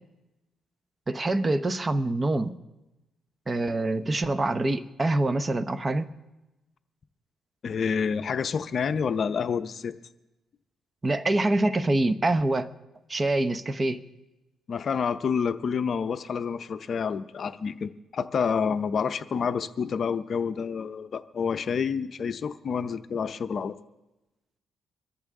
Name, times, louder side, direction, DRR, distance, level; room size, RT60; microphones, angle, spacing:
voice 1, 1.1-2.5 3.5-6.1 11.0-12.7 13.1-14.0, right 2 dB, 25° right, 11 dB, 0.8 m, -25 dB
voice 2, 7.6-9.9 14.7-23.7, left 6 dB, 50° left, 11 dB, 0.7 m, -28 dB
25.5 x 13.5 x 3.7 m, 1.0 s
cardioid pair, 90°, 0 cm